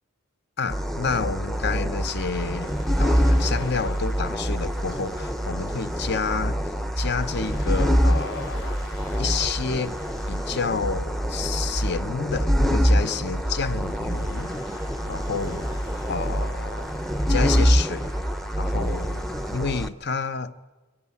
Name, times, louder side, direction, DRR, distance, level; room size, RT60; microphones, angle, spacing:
Waves surf, 0.6-19.6, left 1 dB, 80° left, 4.5 m, -48 dB
voice 1, 0.6-2.7 3.0-8.8 9.2-10.0 10.3-14.5 15.1-15.7 16.1-16.9 17.3-18.1 18.6-19.2 19.5-20.7, left 5 dB, 50° left, 0.7 m, -29 dB
sound 1, 0.7-19.9, equal, ahead, 0.6 m, -25 dB
22.5 x 14.5 x 9.6 m
head